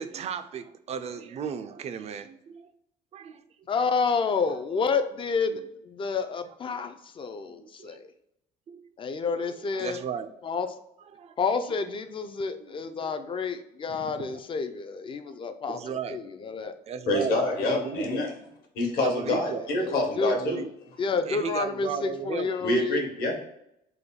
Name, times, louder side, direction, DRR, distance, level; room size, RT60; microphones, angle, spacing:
voice 1, 0.0-2.7 3.1-3.4 3.9-4.0 7.6-8.0 8.7-8.8 9.4-10.3 11.1-11.3 12.6-13.4 13.8-14.4 15.7-18.3 19.0-19.7 20.3-20.7 21.1-22.5, right 7 dB, 40° right, 9 dB, 0.4 m, -36 dB
voice 2, 3.7-8.1 9.0-10.0 10.4-10.7 11.4-16.7 19.8-20.3 21.0-23.0, left 5 dB, 30° left, 8 dB, 0.4 m, -29 dB
voice 3, 17.1-18.3 18.7-20.6 22.6-23.5, left 2 dB, 65° left, 2 dB, 1.2 m, -26 dB
3.4 x 2.2 x 3.6 m, 0.78 s
cardioid pair, 110°, 17 cm